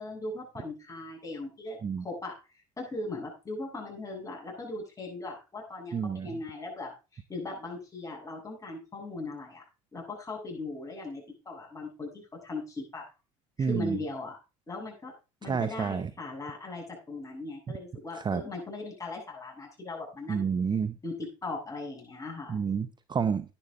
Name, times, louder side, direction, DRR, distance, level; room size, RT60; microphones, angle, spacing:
voice 1, 0.0-2.3 2.8-9.6 9.9-13.0 13.6-14.3 14.7-15.1 15.4-20.5 21.0-22.6, left 2 dB, 20° left, -1 dB, 7.9 m, -39 dB
voice 2, 5.9-6.3 13.6-14.0 15.4-16.1 18.2-18.4 20.3-20.9 22.5-23.5, right 6 dB, 25° right, 13 dB, 0.8 m, -29 dB
11.5 x 10.5 x 3.8 m, 0.30 s
supercardioid pair, 90°, 17 cm